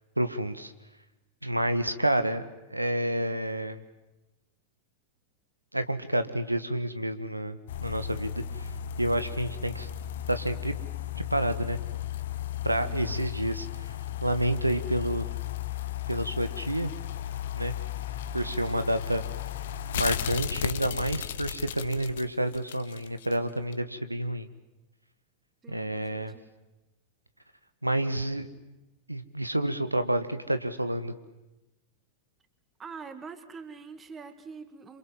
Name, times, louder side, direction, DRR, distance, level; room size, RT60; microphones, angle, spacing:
voice 1, 0.2-0.7 1.4-3.8 5.7-9.9 10.3-10.7 11.1-11.8 12.6-13.7 14.2-15.3 16.1-16.9 17.5-17.7 18.3-19.2 19.9-24.5 25.7-26.3 27.8-28.5 29.1-31.1, right 1 dB, 85° right, 10 dB, 1.6 m, -29 dB
sound 1, 7.7-23.4 23.7-23.8, left 11 dB, 60° left, 1.3 m, -35 dB
voice 2, 12.8-13.3 25.6-26.5 32.8-35.0, right 5 dB, 20° right, 10 dB, 2.0 m, -45 dB
28.0 x 26.5 x 7.6 m, 1.0 s
figure-of-eight pair, 90°, 0 cm